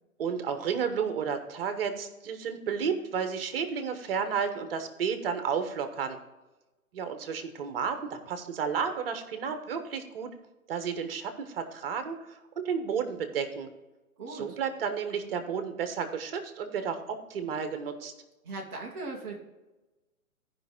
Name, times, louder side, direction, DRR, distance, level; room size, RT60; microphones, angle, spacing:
voice 1, 0.2-6.2 6.9-10.3 10.7-13.7 14.3-18.1, right 6 dB, 40° right, 8 dB, 1.2 m, -32 dB
voice 2, 14.2-14.6 18.4-19.4, right 3 dB, 10° right, -5 dB, 0.5 m, -38 dB
14.0 x 5.4 x 3.6 m, 1.1 s
figure-of-eight pair, 130°, 43 cm